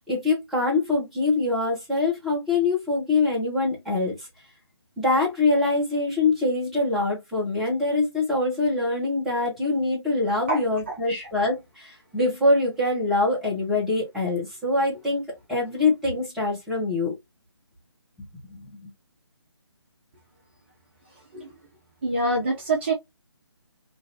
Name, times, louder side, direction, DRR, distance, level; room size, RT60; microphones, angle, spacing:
voice 1, 0.1-4.3 5.0-17.1 18.5-18.9, left 2 dB, ahead, 0.9 m, -24 dB
voice 2, 10.5-11.3 21.1-21.5 22.0-22.9, right 2 dB, 25° right, 0.5 m, -27 dB
2.9 x 2.5 x 2.5 m
figure-of-eight pair, 150°, 15 cm